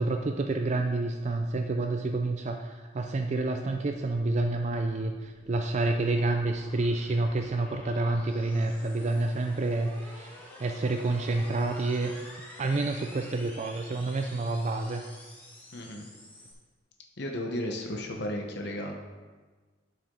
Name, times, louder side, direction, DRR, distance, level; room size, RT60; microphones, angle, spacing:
voice 1, 0.0-15.0, right 2 dB, 40° right, 5 dB, 0.4 m, -29 dB
sound 1, 4.1-16.5, left 1 dB, 10° left, 1.5 m, -50 dB
voice 2, 15.7-16.1 17.2-19.0, left 1 dB, 65° left, 1 dB, 0.9 m, -34 dB
11.0 x 5.9 x 3.8 m, 1.4 s
head